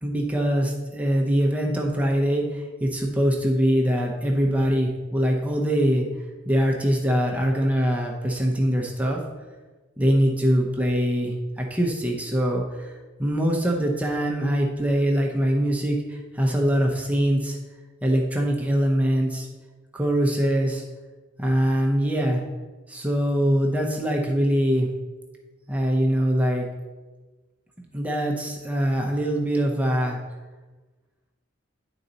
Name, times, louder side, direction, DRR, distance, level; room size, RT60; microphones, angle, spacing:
voice 1, 0.0-6.1 6.5-9.2 10.0-17.6 18.0-19.5 19.9-20.8 21.4-22.4 22.9-24.9 25.7-26.7 27.9-30.2, equal, 10° right, -1 dB, 0.7 m, -23 dB
9.7 x 3.9 x 4.0 m, 1.3 s
head